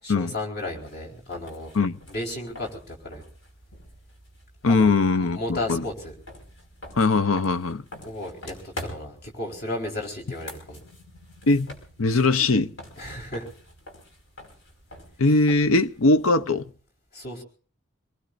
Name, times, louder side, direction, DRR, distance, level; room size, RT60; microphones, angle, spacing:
voice 1, 0.0-1.7 2.1-3.2 4.6-4.9 5.2-6.1 8.0-10.8 13.0-13.5 17.1-17.4, left 1 dB, 50° left, 4.2 m, -34 dB
sound 1, 0.6-16.7, left 1 dB, 65° left, 5.3 m, -46 dB
voice 2, 4.6-5.9 7.0-7.8 11.5-12.7 15.2-16.6, left 3 dB, 85° left, 0.8 m, -21 dB
26.0 x 20.0 x 2.6 m
head